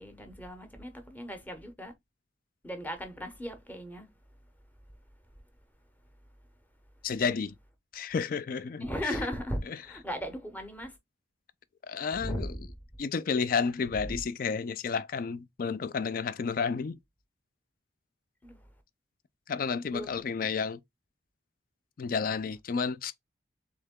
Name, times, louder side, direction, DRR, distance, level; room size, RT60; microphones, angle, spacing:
voice 1, 0.0-1.9 2.6-4.4 8.8-11.0 12.2-12.7 14.1-14.2 18.4-18.8 19.9-20.3, equal, 10° left, 0.8 m, -37 dB
voice 2, 7.0-7.5 7.9-8.8 11.8-12.5 13.0-17.0 19.5-20.8 22.0-23.1, left 5 dB, 50° left, 0.4 m, -31 dB
3.7 x 3.3 x 3.6 m
head